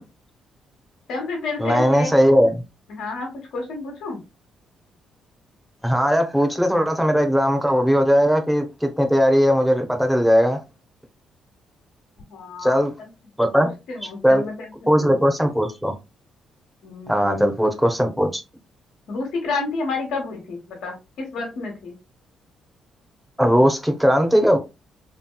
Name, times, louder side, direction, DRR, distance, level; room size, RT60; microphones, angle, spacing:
voice 1, 1.1-2.5 2.9-4.2 12.3-13.1 13.5-15.5 16.8-17.5 19.1-21.9, left 3 dB, 75° left, 1.1 m, -30 dB
voice 2, 1.6-2.6 5.8-10.6 12.6-12.9 13.4-13.7 14.2-14.4 14.9-15.9 17.1-18.4 23.4-24.6, equal, ahead, 0.7 m, -18 dB
3.0 x 2.9 x 2.2 m
cardioid pair, 90°, 0 cm